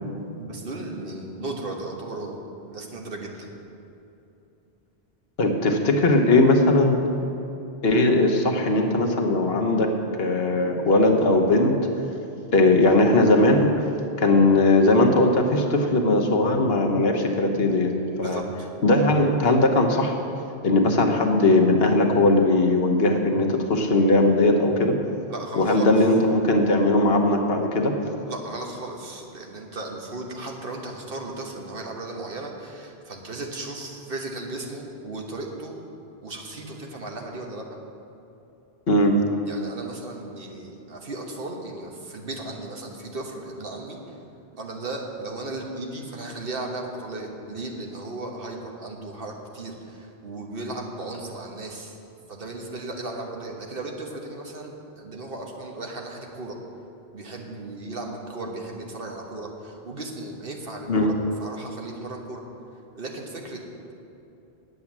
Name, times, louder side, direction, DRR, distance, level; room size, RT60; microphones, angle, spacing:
voice 1, 0.4-3.5 18.2-18.7 25.3-26.1 28.2-35.8 36.2-37.6 39.5-44.1 44.5-52.0 52.3-56.6 57.1-61.1 61.4-62.4 62.9-63.6, right 2 dB, 60° right, 1 dB, 1.4 m, -36 dB
voice 2, 5.4-7.0 7.8-9.9 10.2-11.7 12.5-13.7 14.2-17.9 18.2-18.4 18.8-20.1 20.6-24.9 25.6-27.9 38.9-39.2 60.9-61.1, left 2 dB, 65° left, 3 dB, 1.2 m, -19 dB
9.3 x 8.0 x 7.2 m, 2.9 s
omnidirectional pair, 1.1 m